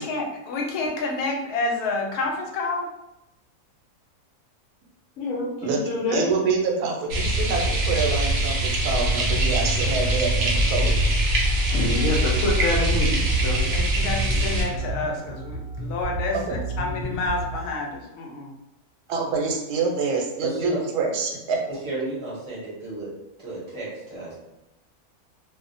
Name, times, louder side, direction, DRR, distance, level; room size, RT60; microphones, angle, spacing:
voice 1, 0.0-2.9 13.6-18.5, left 3 dB, 85° left, 0 dB, 1.1 m, -29 dB
voice 2, 5.2-6.3 11.7-13.6, left 2 dB, 65° left, -3 dB, 0.8 m, -26 dB
voice 3, 6.1-10.9 16.5-16.6 19.1-21.6, right 4 dB, 85° right, 1 dB, 1.1 m, -26 dB
sound 1, 7.1-14.6, right 1 dB, 65° right, 0.7 m, -22 dB
sound 2, 11.4-17.6, right 2 dB, 25° left, 1.2 m, -33 dB
voice 4, 20.4-20.9 21.7-23.1 23.4-24.4, right 2 dB, 25° right, -7 dB, 0.7 m, -32 dB
2.5 x 2.1 x 2.5 m, 0.92 s
omnidirectional pair, 1.6 m